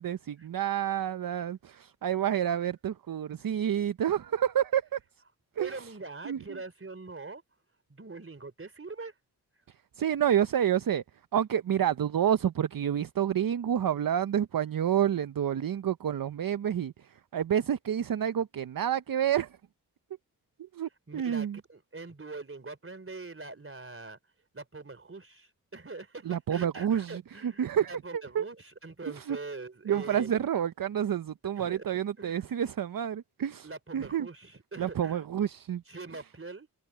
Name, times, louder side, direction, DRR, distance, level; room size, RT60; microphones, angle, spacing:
voice 1, 0.0-5.0 5.6-5.9 6.2-6.6 10.0-11.0 11.3-19.6 20.6-21.6 26.2-28.4 29.1-29.4 29.9-34.3 34.8-35.8, right 9 dB, 65° right, 0.7 m, -29 dB
voice 2, 5.6-7.4 7.9-9.1 21.1-24.2 24.5-30.3 31.6-31.8 32.2-32.4 33.6-35.2 35.9-36.8, right 3 dB, 35° right, 3.4 m, -43 dB
cardioid pair, 60°, 37 cm